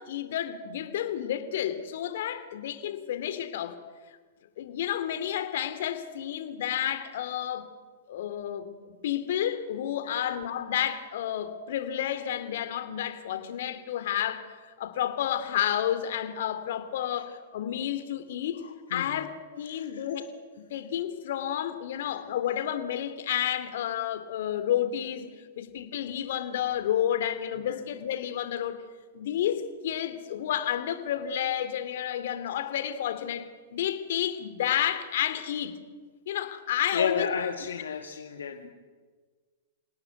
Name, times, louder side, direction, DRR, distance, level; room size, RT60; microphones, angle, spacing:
voice 1, 0.0-3.8 4.6-7.6 8.1-20.3 20.7-25.3 25.6-28.8 29.1-35.8 36.3-37.3 38.6-38.7, left 10 dB, 60° left, 2.9 m, -31 dB
voice 2, 10.0-10.4 17.1-17.2 18.6-19.2 19.7-20.1 27.6-27.8 36.9-38.7, left 6 dB, 75° left, 1.9 m, -33 dB
28.0 x 17.5 x 9.4 m
hypercardioid pair, 110°, 0 cm